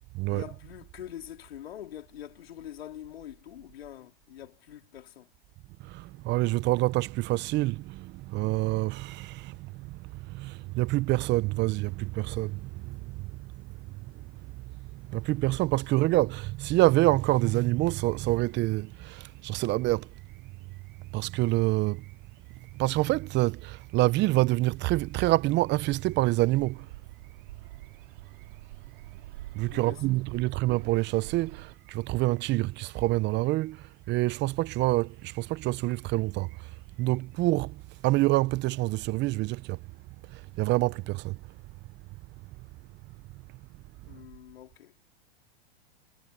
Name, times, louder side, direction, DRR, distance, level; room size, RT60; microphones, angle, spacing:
voice 1, 0.3-5.3 29.7-30.0 30.4-30.6 44.0-45.0, left 11 dB, 80° left, 4.4 m, -44 dB
voice 2, 5.8-13.7 14.1-14.2 14.8-20.1 21.1-22.0 22.7-26.9 29.5-36.7 37.0-39.8 40.3-41.4, right 19 dB, 35° right, 0.8 m, -27 dB
Bird, 24.7-31.7, right 16 dB, 70° right, 2.4 m, -47 dB
hypercardioid pair, 110°, 30 cm